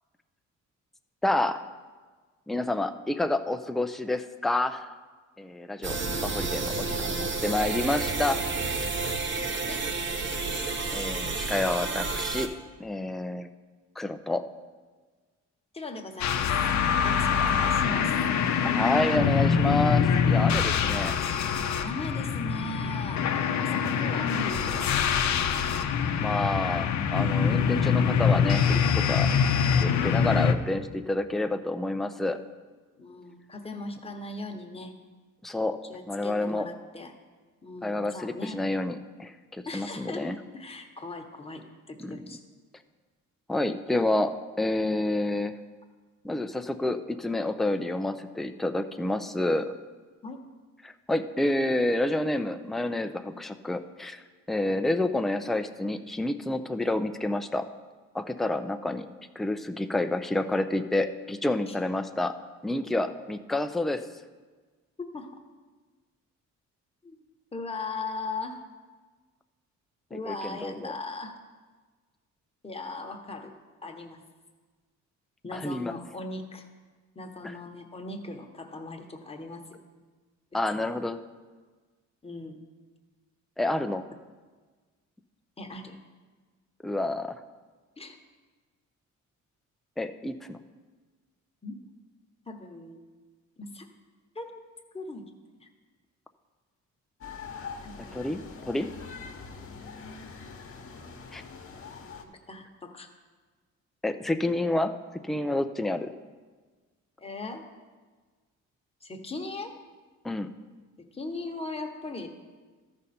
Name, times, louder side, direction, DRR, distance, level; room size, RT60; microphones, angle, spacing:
voice 1, 1.2-1.6 2.5-4.9 5.4-6.0 6.2-8.4 10.9-12.5 12.8-13.5 14.0-14.4 17.4-17.8 18.6-21.2 26.2-29.3 29.8-32.4 35.4-35.8 36.1-36.7 37.8-40.4 42.0-42.2 43.5-44.3 44.6-45.6 46.2-49.7 50.8-54.2 54.5-57.7 58.1-59.1 59.4-62.3 62.6-64.0 70.1-70.9 75.5-75.9 77.4-77.6 80.5-81.2 83.6-84.0 86.8-87.4 90.0-90.6 98.1-98.9 101.3-101.4 104.0-104.9 105.2-106.1 110.2-110.5, left 2 dB, ahead, 8 dB, 0.4 m, -29 dB
sound 1, 5.8-12.5, right 3 dB, 40° right, 0.9 m, -30 dB
voice 2, 15.7-16.5 17.0-18.1 21.1-23.3 23.6-25.0 33.0-34.9 35.9-37.1 37.6-38.6 39.7-42.4 43.9-44.0 50.2-50.4 61.7-61.8 65.0-65.4 67.0-67.2 67.5-68.6 70.1-71.3 72.6-73.5 73.8-74.2 75.4-76.6 77.1-79.6 80.7-80.9 82.2-82.6 85.6-86.0 88.0-88.2 91.6-91.7 92.5-93.0 93.6-93.9 94.3-94.6 94.9-95.2 95.6-95.7 97.8-98.2 100.4-100.5 102.5-103.1 107.2-107.6 109.0-109.7 111.0-112.3, left 2 dB, 20° left, 3 dB, 1.1 m, -39 dB
sound 2, 16.2-30.5, left 7 dB, 65° left, 0.7 m, -24 dB
sound 3, 97.2-102.2, left 5 dB, 45° left, 1.1 m, -43 dB
13.5 x 5.4 x 4.2 m, 1.4 s
cardioid pair, 90°, 30 cm